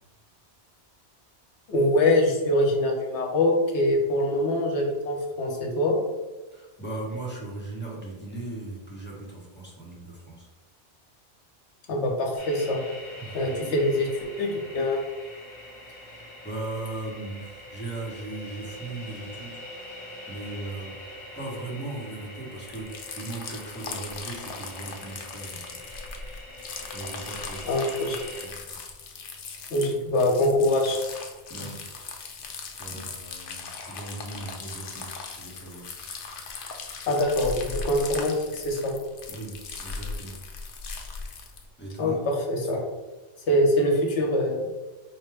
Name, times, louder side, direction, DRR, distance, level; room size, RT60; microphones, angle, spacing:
voice 1, 1.7-6.0 11.9-12.8 13.3-14.1 14.4-15.0 27.6-28.2 29.7-31.0 37.1-38.9 42.0-42.1 42.5-42.8 43.5-44.7, left 1 dB, 75° left, 1 dB, 1.1 m, -24 dB
voice 2, 6.5-10.5 13.2-13.8 16.0-19.6 20.3-21.0 21.3-25.7 26.9-27.8 28.4-28.8 31.5-31.9 32.8-35.9 39.3-40.4 41.8-42.2, right 2 dB, 10° left, -6 dB, 0.8 m, -38 dB
sound 1, 12.4-28.5, left 1 dB, 45° left, 1.0 m, -43 dB
sound 2, 22.6-41.6, left 4 dB, 60° left, 0.6 m, -39 dB
4.8 x 2.1 x 3.3 m, 1.2 s
omnidirectional pair, 1.2 m